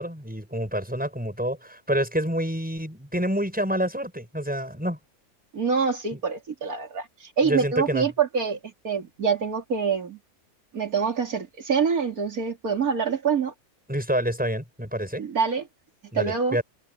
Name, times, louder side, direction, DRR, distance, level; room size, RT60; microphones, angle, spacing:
voice 1, 0.0-5.0 6.1-6.2 7.4-8.1 13.9-15.2 16.1-16.6, equal, 5° right, 5.8 m, -27 dB
voice 2, 5.5-8.6 8.8-10.2 10.7-13.5 15.2-15.7 16.1-16.6, right 6 dB, 90° right, 3.2 m, -25 dB
omnidirectional pair, 1.5 m